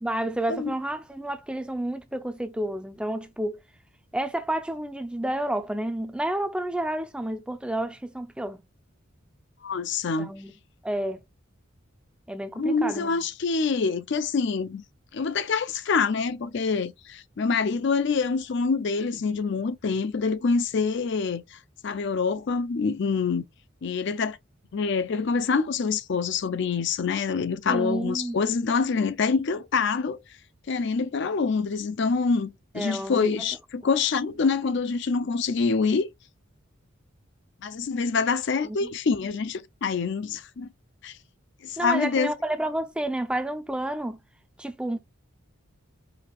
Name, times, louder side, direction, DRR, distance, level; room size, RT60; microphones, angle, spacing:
voice 1, 0.0-3.6 4.1-8.6 10.2-10.5 10.8-11.2 12.3-13.2 27.7-28.4 32.7-33.4 38.6-38.9 41.8-44.2 44.6-45.0, right 1 dB, 5° right, 0.4 m, -30 dB
voice 2, 9.6-10.3 12.6-14.8 15.1-21.6 21.8-23.4 23.8-24.4 24.7-30.2 30.7-36.1 37.6-40.7 41.0-41.2 41.6-42.3, left 5 dB, 60° left, 0.4 m, -26 dB
4.8 x 2.4 x 3.3 m
head